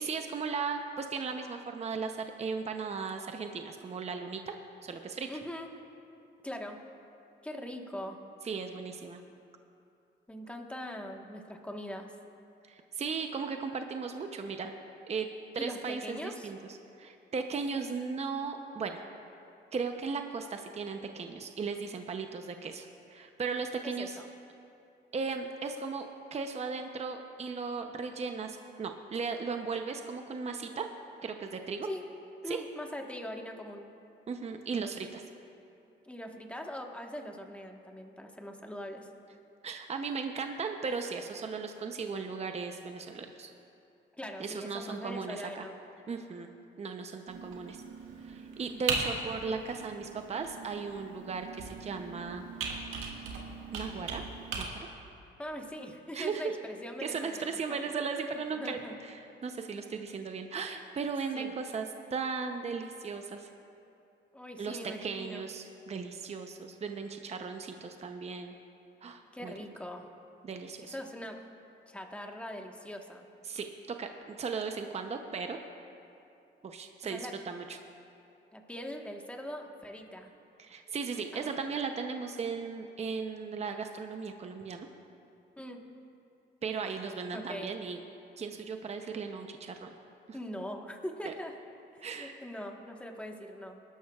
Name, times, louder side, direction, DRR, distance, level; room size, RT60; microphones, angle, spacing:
voice 1, 0.0-4.6 4.8-5.3 8.4-9.2 12.7-14.7 15.1-15.3 15.5-16.6 17.0-19.0 19.7-24.2 25.1-26.0 26.3-30.9 31.2-31.9 32.5-32.6 34.3-35.2 39.6-43.5 44.4-45.7 46.1-46.5 46.8-47.8 48.2-52.4 53.7-54.2 54.6-54.7 56.1-56.4 57.0-61.9 62.1-63.5 64.6-68.5 69.0-69.5 70.4-71.0 73.4-75.6 76.6-77.8 80.6-84.9 86.6-88.0 88.4-90.0 90.3-90.4 91.2-91.3 92.0-92.4, right 5 dB, 35° right, 5 dB, 0.7 m, -37 dB
voice 2, 5.3-5.7 6.4-6.8 7.4-8.2 10.3-12.1 15.5-16.5 23.8-24.2 31.8-32.0 32.4-33.9 36.0-39.1 44.1-45.7 55.4-57.8 58.6-59.0 61.3-61.5 64.3-65.4 69.3-70.1 70.8-71.4 71.9-73.3 77.1-77.3 78.5-80.3 81.3-81.6 85.6-85.9 87.3-87.7 90.3-91.5 92.2-93.8, equal, 5° left, 2 dB, 1.3 m, -41 dB
Computer keyboard, 47.3-54.6, right 4 dB, 90° right, 1.7 m, -39 dB
20.0 x 12.0 x 2.4 m, 2.7 s
cardioid pair, 90°, 20 cm